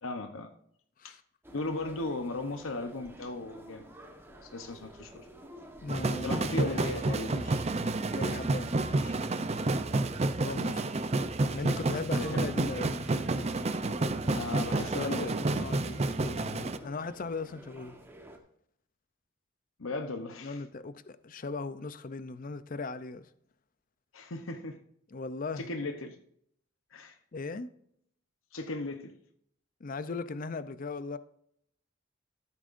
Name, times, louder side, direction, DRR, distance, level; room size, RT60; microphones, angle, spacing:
voice 1, 0.0-0.5 1.0-1.2 1.5-3.8 4.4-5.3 6.2-7.4 12.1-12.5 14.2-15.4 19.8-20.6 24.1-24.8 25.6-26.2 26.9-27.2 28.5-29.1, left 2 dB, 80° left, 0.9 m, -36 dB
sound 1, 1.4-18.4, right 1 dB, 10° right, 1.1 m, -52 dB
voice 2, 5.8-9.6 10.4-10.9 11.5-13.0 14.9-18.0 20.4-23.3 25.1-25.7 27.3-27.7 29.8-31.2, left 3 dB, 40° left, 0.5 m, -38 dB
sound 2, 5.9-16.8, right 2 dB, 30° right, 0.5 m, -30 dB
13.5 x 8.6 x 2.6 m
head